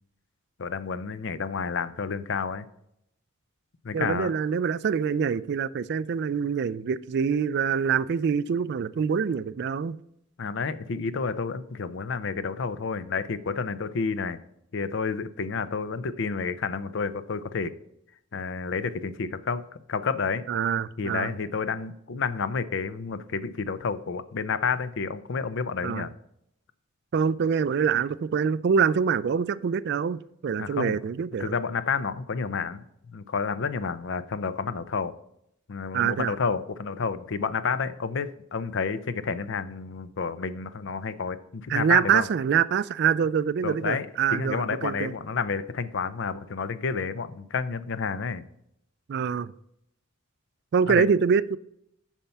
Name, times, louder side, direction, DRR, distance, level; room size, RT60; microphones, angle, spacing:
voice 1, 0.6-2.6 3.8-4.3 10.4-14.4 14.7-17.7 18.3-19.6 19.9-20.4 21.0-26.1 30.6-31.0 31.4-35.1 35.7-42.3 43.6-44.1 44.3-48.4 50.9-51.1, left 5 dB, 60° left, 0.5 m, -30 dB
voice 2, 3.9-10.0 20.5-21.3 25.8-26.1 27.1-31.5 35.9-36.3 41.7-45.1 49.1-49.5 50.7-51.6, right 7 dB, 55° right, 0.3 m, -25 dB
7.2 x 5.7 x 5.5 m
head